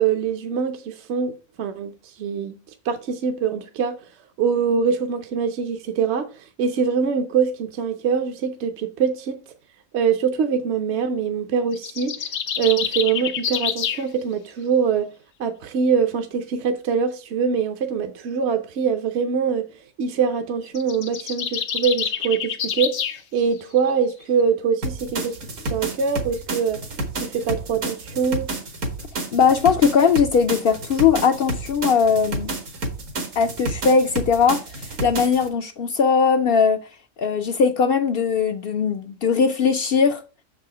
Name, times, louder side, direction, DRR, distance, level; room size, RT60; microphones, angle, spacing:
voice 1, 0.0-2.5 2.8-4.0 4.4-9.4 9.9-12.3 12.6-15.1 15.4-19.7 20.0-23.0 23.3-25.4 25.6-26.8 27.1-28.5, right 6 dB, 65° right, 0.9 m, -23 dB
sound 1, 11.7-14.0 20.7-23.2, left 8 dB, 90° left, 1.2 m, -27 dB
sound 2, 24.8-35.5, right 2 dB, 80° right, 1.7 m, -30 dB
voice 2, 29.3-32.6 33.4-36.8 37.2-40.2, left 6 dB, 60° left, 0.6 m, -19 dB
6.5 x 4.8 x 4.8 m
omnidirectional pair, 1.3 m